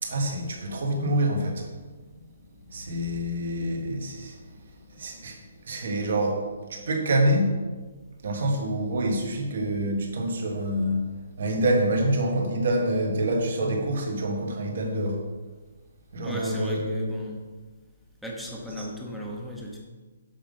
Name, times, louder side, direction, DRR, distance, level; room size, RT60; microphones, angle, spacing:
voice 1, 0.0-1.7 2.7-4.4 4.9-7.6 8.2-11.1 11.4-15.2 16.1-17.1 18.8-18.9, right 1 dB, 50° right, 2 dB, 1.5 m, -26 dB
voice 2, 16.2-17.4 18.2-19.8, equal, ahead, -4 dB, 0.8 m, -36 dB
7.4 x 5.2 x 5.5 m, 1.3 s
hypercardioid pair, 180°, 0 cm